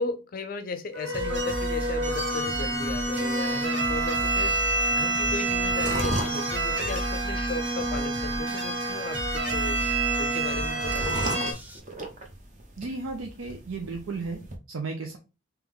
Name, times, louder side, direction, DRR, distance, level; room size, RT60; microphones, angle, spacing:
voice 1, 0.0-9.8 10.2-11.6, left 3 dB, 45° left, 0.4 m, -36 dB
sound 1, 0.9-11.5, right 2 dB, 60° right, 1.0 m, -28 dB
sound 2, 1.1-11.8, equal, 10° right, 0.5 m, -37 dB
sound 3, 2.5-14.6, right 1 dB, 35° right, 0.8 m, -38 dB
voice 2, 12.8-14.4 14.7-15.2, right 3 dB, 85° right, 0.6 m, -34 dB
3.5 x 3.0 x 3.4 m
head